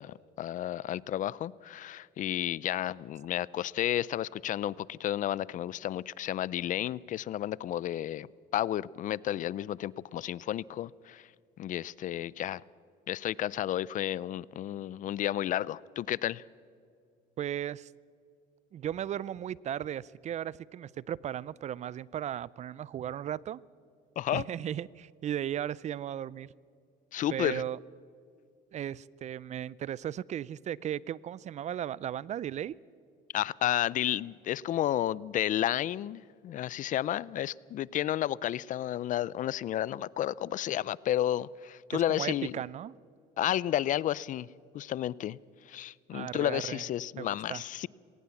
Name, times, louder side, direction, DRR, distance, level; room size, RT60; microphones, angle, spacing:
voice 1, 0.0-8.3 8.5-11.2 11.6-12.6 13.1-16.4 24.2-24.4 27.1-27.6 33.3-42.5 43.4-44.5 44.7-45.4 45.7-47.9, left 12 dB, 50° left, 23 dB, 0.5 m, -32 dB
voice 2, 17.4-17.9 18.7-23.6 24.3-26.5 27.3-27.8 28.7-32.8 41.9-43.0 46.1-46.9 47.2-47.6, right 10 dB, 40° right, 23 dB, 0.4 m, -36 dB
20.0 x 18.5 x 7.1 m, 2.3 s
cardioid pair, 100°, 17 cm